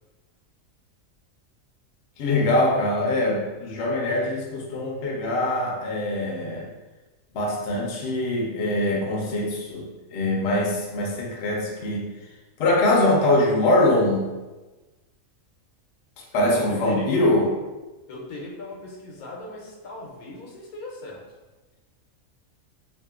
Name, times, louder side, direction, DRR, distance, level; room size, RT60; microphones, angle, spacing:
voice 1, 2.2-6.7 7.3-12.1 12.6-14.3 16.2-17.5, left 1 dB, 60° left, -2 dB, 0.7 m, -23 dB
voice 2, 16.3-17.1 18.1-21.2, left 2 dB, 85° left, -2 dB, 1.1 m, -37 dB
2.7 x 2.4 x 2.3 m, 1.2 s
omnidirectional pair, 1.5 m